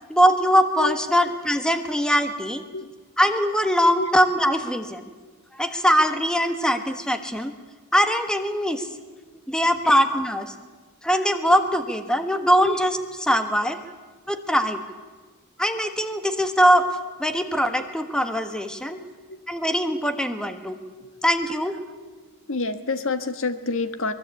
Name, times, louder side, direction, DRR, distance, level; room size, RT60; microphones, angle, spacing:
voice 1, 0.1-2.6 3.2-5.1 5.5-7.5 7.9-8.9 9.5-10.5 11.0-13.8 14.3-14.8 15.6-16.8 17.2-19.0 19.5-20.8 21.2-21.8, equal, 5° left, 8 dB, 1.5 m, -22 dB
voice 2, 22.5-24.1, left 3 dB, 60° left, 10 dB, 1.5 m, -27 dB
24.0 x 21.0 x 8.4 m, 1.3 s
head